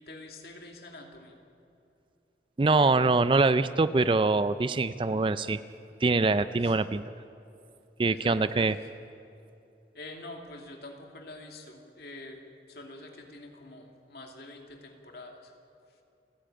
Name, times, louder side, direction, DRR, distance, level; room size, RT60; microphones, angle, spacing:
voice 1, 0.0-1.4 6.6-6.8 8.1-8.8 9.9-15.5, left 2 dB, 60° left, 2 dB, 2.6 m, -46 dB
voice 2, 2.6-5.6 6.0-7.0 8.0-8.7, right 3 dB, 30° right, 13 dB, 0.4 m, -24 dB
29.0 x 10.0 x 8.9 m, 2.7 s
head